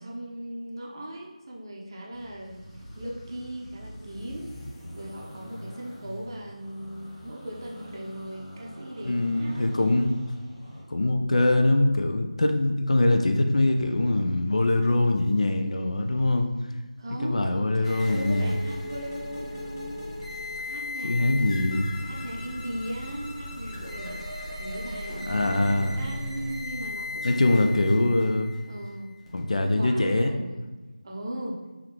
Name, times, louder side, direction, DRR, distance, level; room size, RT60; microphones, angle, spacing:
voice 1, 0.0-2.6 3.0-4.5 4.9-9.7 17.0-21.4 22.0-24.3 24.6-27.7 28.7-29.1 29.6-30.6 31.0-31.6, right 1 dB, 35° right, -2 dB, 0.6 m, -38 dB
sound 1, 2.1-10.8, equal, 10° left, 0.6 m, -44 dB
voice 2, 9.0-10.2 10.9-16.5 17.2-18.5 21.0-21.9 25.3-26.0 27.2-28.5 29.3-30.3, left 2 dB, 55° left, 5 dB, 0.4 m, -23 dB
sound 2, 17.8-29.7, left 2 dB, 40° left, 1.1 m, -37 dB
3.7 x 3.1 x 3.3 m, 1.2 s
figure-of-eight pair, 165°, 4 cm